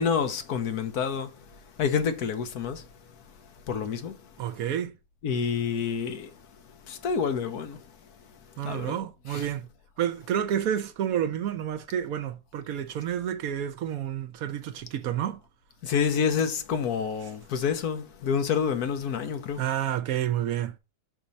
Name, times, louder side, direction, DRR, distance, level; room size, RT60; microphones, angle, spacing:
voice 1, 0.0-1.3 1.8-2.8 3.7-4.2 5.2-6.3 6.9-7.8 8.6-8.9 9.3-9.4 15.8-19.6, left 6 dB, 85° left, 1.5 m, -28 dB
voice 2, 4.4-4.9 8.6-9.7 10.0-15.4 19.6-20.8, right 10 dB, 75° right, 1.0 m, -29 dB
5.9 x 4.2 x 5.2 m
omnidirectional pair, 1.6 m